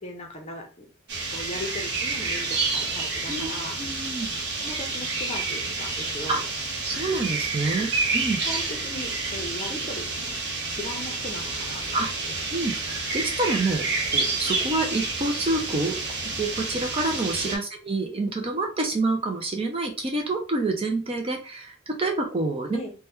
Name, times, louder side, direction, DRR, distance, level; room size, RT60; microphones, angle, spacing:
voice 1, 0.0-0.9 1.3-4.1 4.6-6.4 7.7-7.8 8.5-10.4 10.7-12.3 17.4-17.6 22.7-22.9, left 1 dB, 30° left, 3 dB, 0.7 m, -38 dB
sound 1, 1.1-17.6, right 3 dB, 50° right, 0.8 m, -29 dB
voice 2, 3.8-4.3 6.3-6.4 6.8-8.4 11.9-12.1 12.5-12.7 13.1-13.9 14.1-16.0 16.2-22.8, right 2 dB, 25° right, 1 dB, 0.4 m, -27 dB
2.9 x 2.2 x 3.4 m, 0.34 s
head